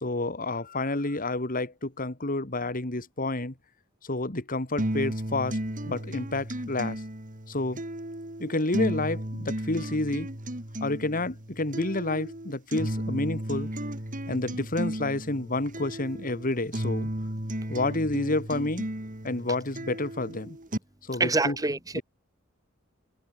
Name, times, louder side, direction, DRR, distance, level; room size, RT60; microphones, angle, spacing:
voice 1, 0.0-3.5 4.0-5.6 5.9-7.0 7.5-7.8 8.4-10.3 10.8-13.7 14.3-17.1 17.7-18.9 19.2-20.6 21.1-21.7 21.9-22.0, left 2 dB, 45° left, 2.3 m, -29 dB
sound 1, 4.8-20.8, right 1 dB, 40° right, 4.1 m, -34 dB
voice 2, 21.2-22.0, right 3 dB, 20° right, 1.5 m, -26 dB
head